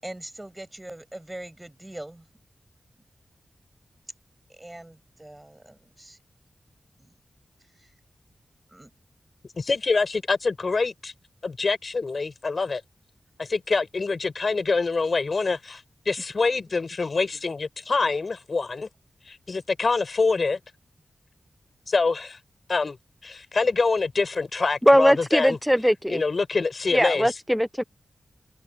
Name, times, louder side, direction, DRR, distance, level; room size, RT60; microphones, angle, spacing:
voice 1, 0.0-2.3 4.5-6.2 7.0-7.1 7.8-7.9 8.7-8.9, right 1 dB, 15° right, 6.4 m, -42 dB
voice 2, 9.5-11.1 11.4-12.8 13.4-18.9 19.3-20.6 21.9-22.4 22.7-23.0 23.2-25.6 26.1-27.3, left 4 dB, 55° left, 5.7 m, -25 dB
voice 3, 24.9-26.2 26.9-27.8, equal, ahead, 0.6 m, -20 dB
wide cardioid pair, 85°, 0 cm